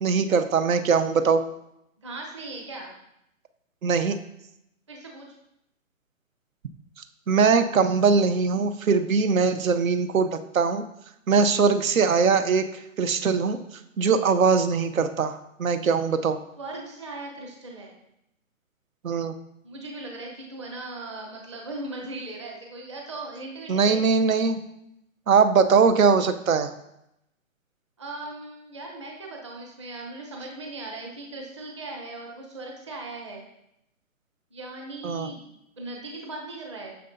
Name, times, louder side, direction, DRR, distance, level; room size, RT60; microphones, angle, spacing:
voice 1, 0.0-1.4 3.8-4.2 7.3-10.8 11.3-12.7 13.0-13.6 14.0-16.4 19.0-19.3 23.7-24.6 25.3-26.7 35.0-35.3, right 5 dB, 80° right, 10 dB, 0.8 m, -21 dB
voice 2, 2.0-2.9 4.9-5.3 11.4-11.6 16.6-17.9 19.6-24.0 28.0-33.4 34.5-37.0, right 2 dB, 20° right, 0 dB, 0.7 m, -38 dB
9.5 x 6.8 x 2.6 m, 0.82 s
hypercardioid pair, 175°, 41 cm